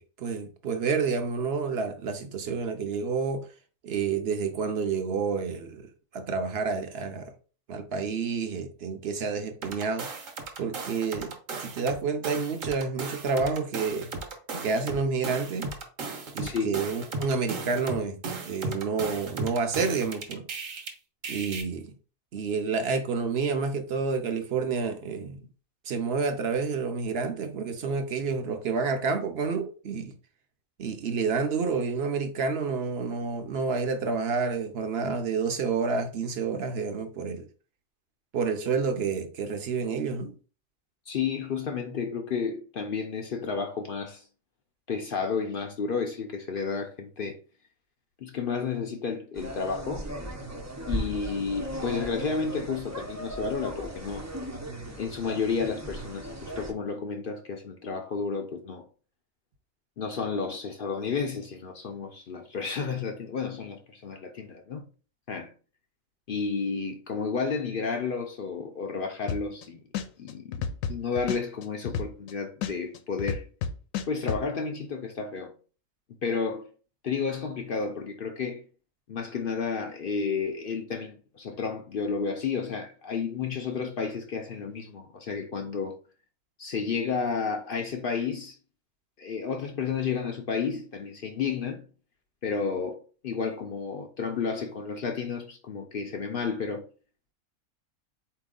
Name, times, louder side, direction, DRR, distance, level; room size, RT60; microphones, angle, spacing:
voice 1, 0.0-3.5 3.8-5.8 6.1-7.3 7.7-10.1 10.6-11.3 11.6-14.1 14.6-15.7 16.3-18.2 18.5-20.5 21.3-21.9 22.3-25.4 25.9-30.1 30.8-37.5 38.3-40.3, right 5 dB, 55° right, 0.8 m, -29 dB
sound 1, 9.6-12.0 12.2-20.9 21.2-21.6, right 3 dB, 75° right, 1.3 m, -36 dB
voice 2, 16.4-16.8 41.1-44.2 44.9-47.4 48.2-50.1 50.8-54.3 55.0-58.8 60.0-64.9 65.3-65.5 66.3-69.8 70.2-73.5 74.1-75.5 76.2-76.7 77.0-78.6 79.1-86.0 86.6-88.6 89.2-91.9 92.4-96.9, left 5 dB, 55° left, 0.6 m, -31 dB
sound 2, 49.3-56.7, right 1 dB, 20° right, 0.4 m, -37 dB
sound 3, 69.3-69.6 69.9-72.3 72.6-74.4, left 7 dB, 80° left, 1.0 m, -31 dB
4.3 x 2.9 x 3.7 m
omnidirectional pair, 1.4 m